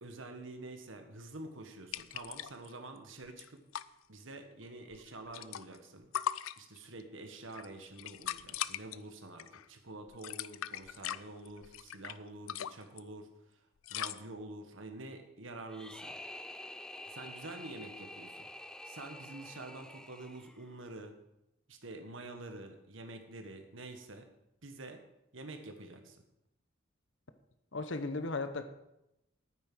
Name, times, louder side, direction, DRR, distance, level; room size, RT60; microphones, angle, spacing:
voice 1, 0.0-3.6 4.1-6.1 6.6-13.3 13.9-16.2 17.1-18.5 18.8-21.1 21.7-24.2 24.6-25.0 25.3-26.2, right 2 dB, 75° right, 5 dB, 1.5 m, -47 dB
sound 1, 1.9-2.7 3.0-3.1 3.3-3.9 4.9-5.9 6.1-7.0 7.5-9.0 9.4-9.7 10.1-12.2 12.5-13.0 13.8-14.2, left 10 dB, 85° left, 0.4 m, -39 dB
sound 2, 15.7-20.8, left 1 dB, 5° left, 0.3 m, -48 dB
voice 2, 27.7-28.6, left 3 dB, 70° left, 10 dB, 0.9 m, -35 dB
9.2 x 9.1 x 6.2 m, 0.86 s
head